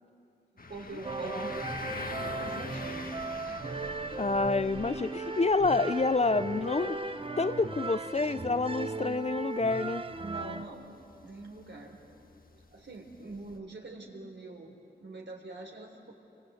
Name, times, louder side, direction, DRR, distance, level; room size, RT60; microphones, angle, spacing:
voice 1, 0.5-1.5 1.8-3.1 3.4-4.2 10.2-12.2 12.7-16.1, right 2 dB, 75° right, 2 dB, 3.8 m, -45 dB
sound 1, 0.6-13.6, left 3 dB, 50° left, 1.4 m, -46 dB
sound 2, 1.0-10.6, right 3 dB, 30° right, 0.9 m, -37 dB
voice 2, 4.2-7.0 7.4-10.0, left 3 dB, 35° left, 13 dB, 0.6 m, -28 dB
29.0 x 23.5 x 8.1 m, 2.7 s
wide cardioid pair, 75°, 19 cm